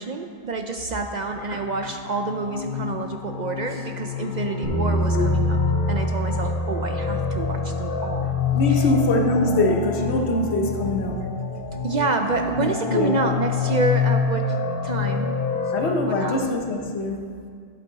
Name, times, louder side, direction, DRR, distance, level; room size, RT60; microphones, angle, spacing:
voice 1, 0.0-5.6 5.9-8.3 8.7-8.8 11.7-14.6 14.8-15.4 15.8-16.5, right 3 dB, 50° right, 5 dB, 0.6 m, -28 dB
bald snake, 1.6-16.4, left 6 dB, 55° left, 0.8 m, -27 dB
sound 1, 4.6-10.9, right 1 dB, 85° right, 1.9 m, -28 dB
voice 2, 8.5-11.2 12.6-13.2 15.7-17.2, left 2 dB, 75° left, 3 dB, 1.2 m, -23 dB
11.0 x 8.3 x 4.0 m, 2.1 s
omnidirectional pair, 1.1 m